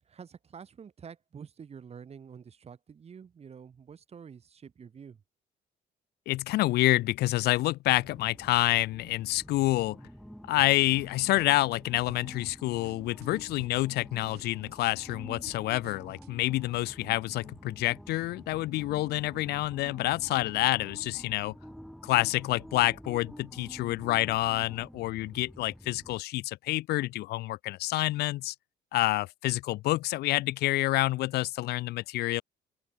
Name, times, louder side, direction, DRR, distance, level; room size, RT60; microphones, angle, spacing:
voice 1, 0.0-5.2, right 7 dB, 40° right, 4.1 m, -48 dB
voice 2, 6.3-10.0 10.5-21.5 22.0-28.5 28.9-32.4, left 17 dB, 70° left, 0.5 m, -28 dB
sound 1, 7.8-26.2, equal, ahead, 4.0 m, -48 dB
sound 2, 10.6-11.8 12.1-13.3 13.6-14.0 14.3-16.3, right 15 dB, 75° right, 6.7 m, -53 dB
open air
cardioid pair, 110°, 17 cm